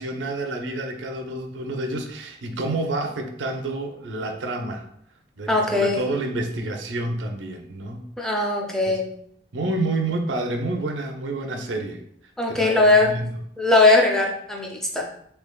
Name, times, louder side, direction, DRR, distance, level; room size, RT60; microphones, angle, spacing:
voice 1, 0.0-4.9 5.4-8.0 8.9-9.0 9.5-12.0 12.5-13.3, right 2 dB, 85° right, 4 dB, 0.5 m, -29 dB
voice 2, 5.5-6.0 8.2-9.1 12.4-13.1 13.6-15.0, left 2 dB, 5° left, -1 dB, 0.4 m, -19 dB
3.6 x 3.3 x 2.2 m, 0.69 s
head